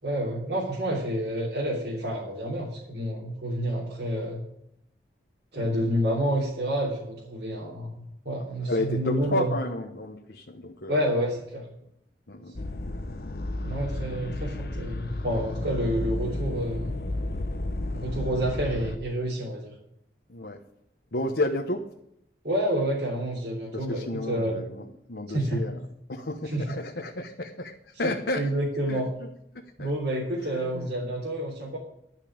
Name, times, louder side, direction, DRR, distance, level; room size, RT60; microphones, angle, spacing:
voice 1, 0.0-4.4 5.5-9.6 10.9-11.7 13.6-16.9 17.9-19.7 22.4-24.6 25.3-25.6 26.5-26.6 28.3-29.1 29.8-31.8, right 1 dB, 70° right, -6 dB, 3.2 m, -29 dB
voice 2, 5.6-6.0 8.7-11.0 12.3-12.5 20.3-20.6 21.1-21.9 23.7-25.8 26.1-28.5 28.9-29.0 29.5-29.9 30.4-30.9, left 1 dB, 70° left, 0 dB, 1.2 m, -32 dB
sound 1, 12.6-19.0, left 1 dB, 55° left, 0.9 m, -32 dB
12.5 x 5.7 x 8.7 m, 0.76 s
head